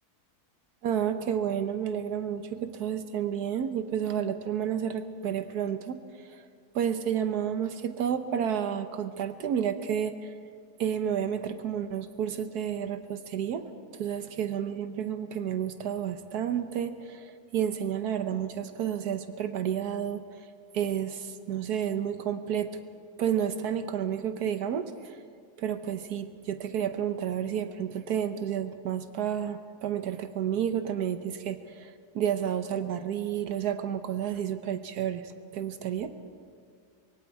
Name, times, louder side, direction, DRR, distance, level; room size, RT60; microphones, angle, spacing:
voice 1, 0.8-6.5 6.7-10.3 10.8-13.7 14.0-20.3 20.7-22.7 23.2-25.2 25.6-36.1, right 9 dB, 75° right, 9 dB, 1.4 m, -31 dB
25.0 x 22.5 x 4.7 m, 2.1 s
omnidirectional pair, 1.7 m